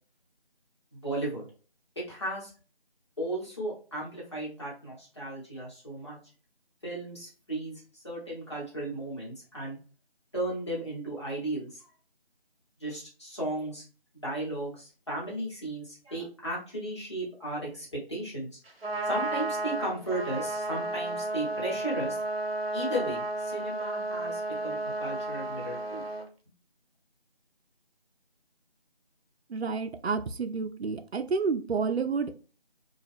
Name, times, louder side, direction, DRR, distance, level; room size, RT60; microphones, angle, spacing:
voice 1, 0.9-1.5 2.1-2.5 3.2-6.2 6.8-9.8 10.3-11.9 12.8-13.8 14.1-18.5 19.0-22.2 22.7-26.0, right 1 dB, 25° left, -6 dB, 1.1 m, -35 dB
Trumpet, 18.7-26.3, right 2 dB, 65° right, 0.9 m, -33 dB
voice 2, 29.5-32.3, right 5 dB, 85° right, 7 dB, 0.5 m, -30 dB
2.9 x 2.3 x 3.3 m, 0.37 s
figure-of-eight pair, 165°, 31 cm